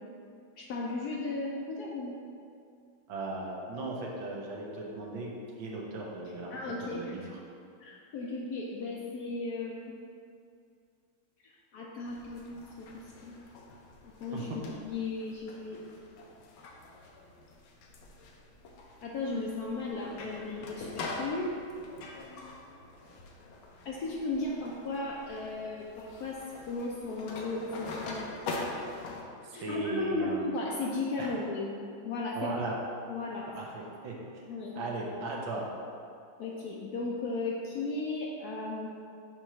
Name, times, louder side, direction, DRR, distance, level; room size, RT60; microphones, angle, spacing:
voice 1, 0.6-2.2 6.5-7.1 7.8-10.0 11.4-13.4 14.0-16.1 19.0-21.5 23.8-26.4 26.7-28.3 29.5-31.7 32.0-32.5 33.1-33.5 34.5-34.8 36.4-38.9, left 3 dB, 70° left, -3 dB, 0.9 m, -35 dB
voice 2, 3.1-7.4 14.3-14.6 29.4-30.5 31.2-31.3 32.3-32.8 33.5-34.2 34.7-35.6, right 2 dB, 80° right, -2 dB, 1.7 m, -37 dB
sound 1, 12.0-29.2, left 2 dB, 90° left, 1.5 m, -44 dB
6.3 x 3.0 x 5.6 m, 2.4 s
omnidirectional pair, 2.1 m